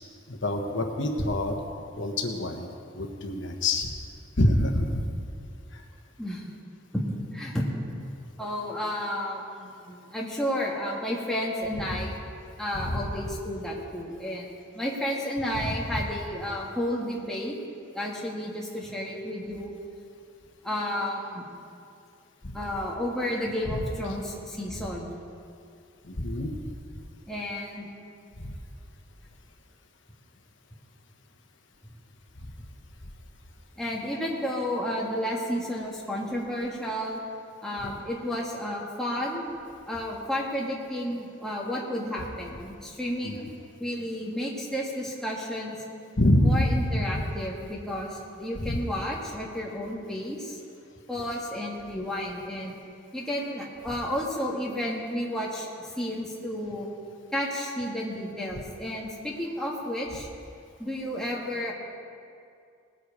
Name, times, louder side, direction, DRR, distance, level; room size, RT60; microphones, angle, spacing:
voice 1, 0.3-1.5 2.0-2.7 2.9-3.9 4.4-5.0 5.7-5.8 11.9-12.0 12.7-13.0 15.6-16.0 22.4-22.5 23.7-23.8 26.1-26.6 28.4-28.5 43.2-43.5 46.2-47.2 48.6-48.8, left 1 dB, 70° left, 2 dB, 1.2 m, -26 dB
voice 2, 6.9-7.7 8.4-12.1 12.6-17.6 17.9-19.7 20.6-21.5 22.5-25.2 27.3-27.9 33.8-37.2 37.6-39.6 39.9-43.4 43.8-45.8 46.4-50.6 51.1-52.8 53.1-56.9 57.3-60.3 60.8-61.7, equal, 5° left, -4 dB, 1.5 m, -32 dB
19.5 x 7.9 x 4.8 m, 2.4 s
head